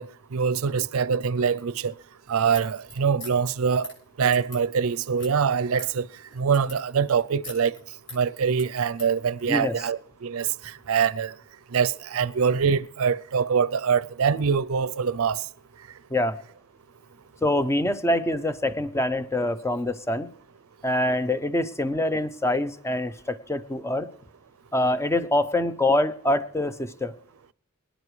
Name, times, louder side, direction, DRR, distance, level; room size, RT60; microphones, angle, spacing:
voice 1, 0.0-1.9 2.3-3.9 4.2-6.1 6.4-7.8 8.1-11.3 11.7-15.4, right 6 dB, 70° right, 0.5 m, -24 dB
sound 1, 2.5-9.2, left 2 dB, 60° left, 7.2 m, -45 dB
voice 2, 9.4-9.8 16.1-16.4 17.4-20.3 20.8-24.1 24.7-27.1, left 1 dB, 15° left, 0.6 m, -25 dB
24.5 x 10.0 x 3.2 m
head